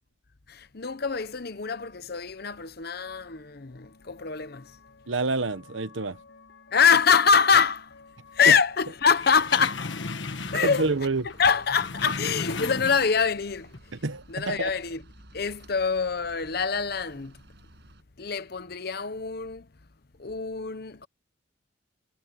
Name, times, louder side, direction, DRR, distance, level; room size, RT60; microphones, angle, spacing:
voice 1, 0.5-4.7 6.7-7.9 8.3-10.0 10.5-10.9 11.2-13.8 14.3-15.0 15.3-17.3 18.2-19.7 20.2-21.1, left 6 dB, 55° left, 0.9 m, -25 dB
sound 1, 1.8-11.9, left 4 dB, 85° left, 4.7 m, -56 dB
voice 2, 5.1-6.2 10.6-11.2 14.0-14.7, right 3 dB, 80° right, 1.1 m, -27 dB
sound 2, 9.1-11.0 11.3-13.3 13.7-13.8, left 4 dB, 70° left, 1.5 m, -35 dB
sound 3, 10.4-18.0, right 1 dB, 60° right, 6.7 m, -53 dB
head